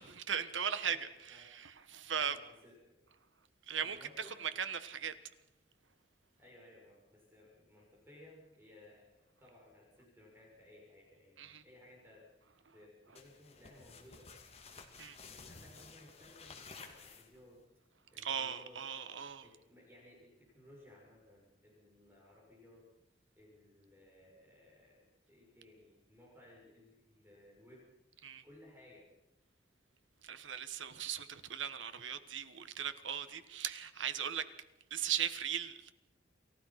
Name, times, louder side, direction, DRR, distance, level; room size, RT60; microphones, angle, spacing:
voice 1, 0.0-2.4 3.7-5.1 11.4-11.6 15.0-15.2 18.2-19.4 28.2-28.4 30.2-34.4 34.9-35.9, right 8 dB, 85° right, 12 dB, 1.5 m, -38 dB
voice 2, 0.8-1.4 2.2-3.0 3.8-4.6 6.4-12.3 12.7-14.3 15.3-17.6 18.1-18.8 19.4-22.9 23.4-27.8 28.4-29.1, left 1 dB, 10° right, -3 dB, 6.6 m, -60 dB
sound 1, 13.2-17.6, left 4 dB, 35° left, 2.3 m, -54 dB
28.0 x 15.5 x 5.9 m, 0.91 s
head